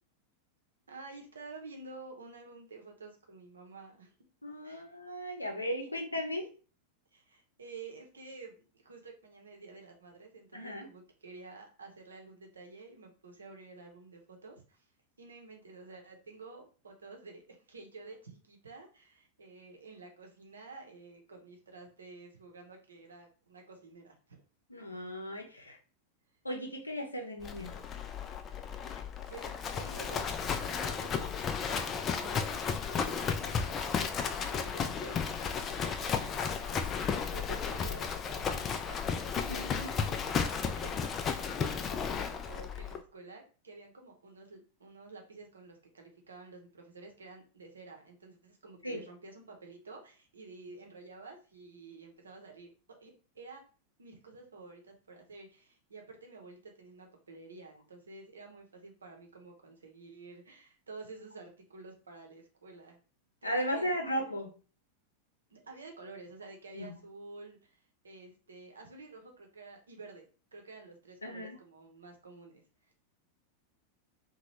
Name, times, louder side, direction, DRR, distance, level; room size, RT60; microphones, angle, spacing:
voice 1, 0.9-4.1 4.6-5.0 5.8-5.9 7.1-14.9 15.2-24.4 26.3-26.4 29.3-53.6 54.0-63.0 63.4-64.3 65.5-70.2 70.5-72.9, right 3 dB, 70° right, 2 dB, 0.7 m, -50 dB
voice 2, 4.4-6.5 10.5-10.9 24.7-25.8 26.4-27.7 39.4-39.9 48.8-49.0 63.4-64.5 66.8-66.9 71.2-71.6, equal, 85° left, 2 dB, 0.6 m, -36 dB
Livestock farm animals working animals, 27.4-43.0, left 6 dB, 25° left, 0.3 m, -34 dB
2.9 x 2.2 x 3.0 m, 0.36 s
figure-of-eight pair, 90°, 0 cm